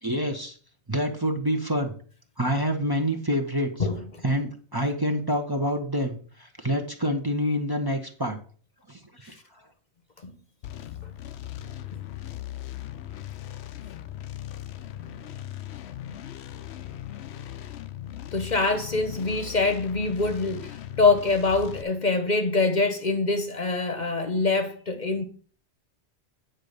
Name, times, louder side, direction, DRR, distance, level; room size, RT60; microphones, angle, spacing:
voice 1, 0.0-0.6 0.9-1.9 2.4-3.9 4.2-8.4 8.9-9.6, equal, 20° right, 0.9 m, -27 dB
sound 1, 10.6-21.8, left 12 dB, 75° left, 0.9 m, -39 dB
voice 2, 18.3-25.2, left 3 dB, 45° left, 1.0 m, -24 dB
9.1 x 4.0 x 6.6 m
omnidirectional pair, 1.1 m